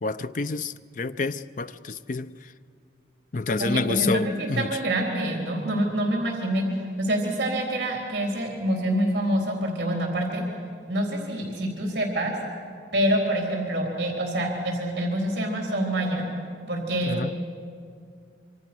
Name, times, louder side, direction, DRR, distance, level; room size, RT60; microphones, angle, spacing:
voice 1, 0.0-2.3 3.3-4.7 17.1-17.3, left 3 dB, 45° left, 0.5 m, -28 dB
voice 2, 3.6-6.7 7.0-10.4 10.9-12.3 12.9-16.3 16.7-17.4, right 1 dB, 60° right, 3.8 m, -26 dB
26.0 x 24.5 x 6.2 m
head